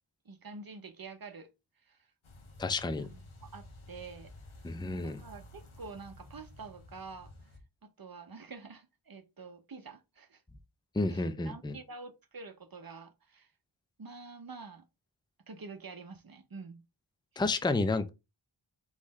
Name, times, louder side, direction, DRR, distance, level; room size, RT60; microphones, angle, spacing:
voice 1, 0.2-1.5 1.9-2.0 3.1-4.3 4.8-7.3 8.0-10.4 11.1-13.5 14.0-14.9 15.5-16.8, right 4 dB, 45° right, 0.8 m, -47 dB
sound 1, 2.2-7.6, left 1 dB, 75° left, 1.0 m, -52 dB
voice 2, 2.6-3.1 4.6-5.2 10.9-11.8 17.4-18.1, left 3 dB, 10° left, 0.5 m, -31 dB
3.6 x 3.2 x 4.1 m
wide cardioid pair, 45°, 49 cm